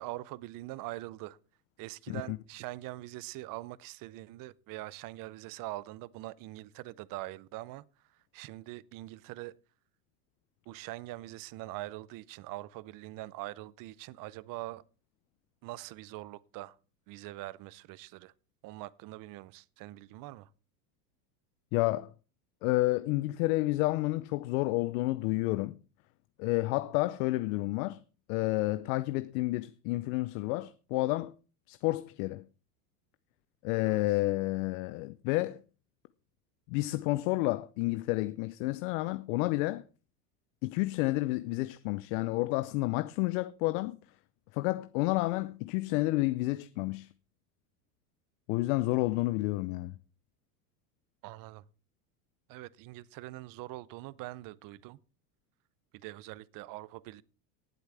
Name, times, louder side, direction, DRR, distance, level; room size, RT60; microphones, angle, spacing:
voice 1, 0.0-1.4 1.8-7.8 8.3-9.6 10.7-14.8 15.6-16.8 17.1-18.3 18.6-20.5 33.8-34.0 51.2-51.6 52.5-55.0 56.0-57.2, right 18 dB, 45° right, 0.6 m, -43 dB
voice 2, 2.1-2.4 21.7-22.1 22.6-25.8 26.4-28.0 28.3-31.3 31.7-32.5 33.6-35.6 36.7-39.8 40.6-44.0 44.5-47.1 48.5-50.0, left 20 dB, 65° left, 0.7 m, -30 dB
18.5 x 8.1 x 3.4 m
hypercardioid pair, 95°, 47 cm